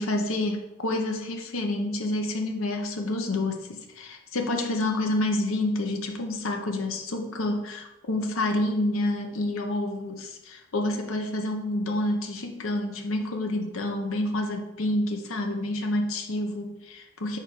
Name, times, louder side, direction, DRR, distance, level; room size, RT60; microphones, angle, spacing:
voice 1, 0.0-17.4, left 1 dB, 80° left, 3 dB, 0.7 m, -28 dB
4.8 x 4.4 x 5.1 m, 0.95 s
head